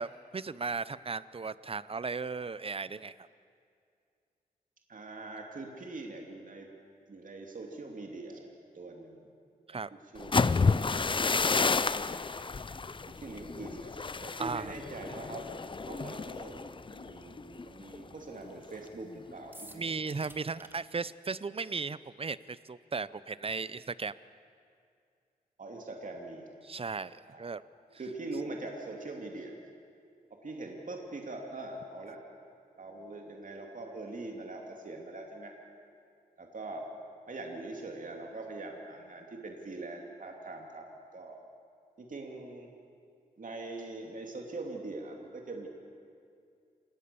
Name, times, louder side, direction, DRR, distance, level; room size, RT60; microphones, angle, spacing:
voice 1, 0.0-3.3 9.7-9.9 14.4-14.7 19.7-24.1 26.6-27.6, right 4 dB, 35° right, 17 dB, 0.7 m, -36 dB
voice 2, 4.9-6.7 7.1-8.4 8.7-9.3 9.7-10.7 11.9-12.3 13.1-15.5 15.8-20.2 25.6-26.5 27.3-27.5 27.9-29.6 30.3-32.2 32.7-35.5 36.4-36.9 37.3-41.4 42.0-42.7 43.4-45.7, right 2 dB, 55° right, 1 dB, 2.7 m, -43 dB
sound 1, 10.2-18.0 18.4-18.7 19.1-19.5, left 4 dB, 30° left, 0.5 m, -31 dB
sound 2, 19.5-20.7, right 1 dB, 15° right, 2.0 m, -50 dB
28.5 x 18.5 x 7.0 m, 2.3 s
wide cardioid pair, 85°, 16 cm